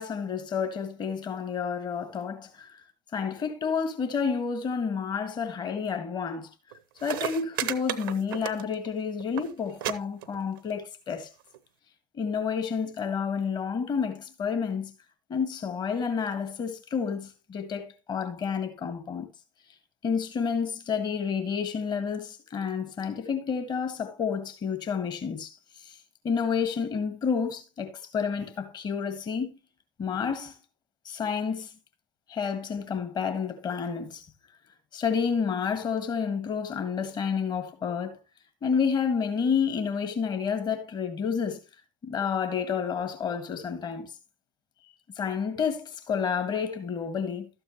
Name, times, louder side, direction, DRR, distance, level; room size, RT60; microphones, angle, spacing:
voice 1, 0.0-2.8 3.1-6.5 7.0-11.3 12.1-14.9 15.3-19.3 20.0-26.0 26.2-29.5 30.0-30.6 31.1-31.7 32.3-34.3 34.9-38.2 38.6-41.6 42.0-44.1 45.2-47.5, left 6 dB, 40° left, 1.7 m, -30 dB
sound 1, 6.7-6.8 7.0-8.9 9.2-9.5 9.8-9.9 10.2-10.7 11.5-11.6, right 12 dB, 75° right, 0.7 m, -32 dB
12.5 x 7.8 x 3.0 m
figure-of-eight pair, 65°, 11 cm